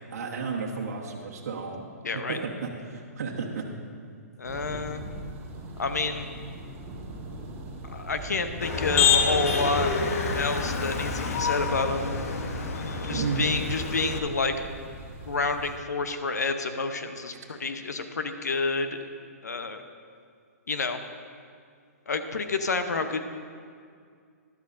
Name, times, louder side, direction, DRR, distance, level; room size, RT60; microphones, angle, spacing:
voice 1, 0.0-3.6 13.1-13.5, right 5 dB, 70° right, -2 dB, 1.3 m, -33 dB
voice 2, 2.0-2.4 4.4-5.0 5.8-6.3 7.8-9.9 10.3-12.1 13.0-14.5 15.3-19.0 19.4-19.8 20.7-21.0 22.1-23.2, left 4 dB, 85° left, 8 dB, 0.8 m, -29 dB
Thunder, 4.4-15.8, right 1 dB, 25° right, 1.6 m, -41 dB
Motor vehicle (road), 8.6-14.2, left 5 dB, 60° left, 1.1 m, -27 dB
13.5 x 12.0 x 2.6 m, 2.2 s
hypercardioid pair, 135°, 9 cm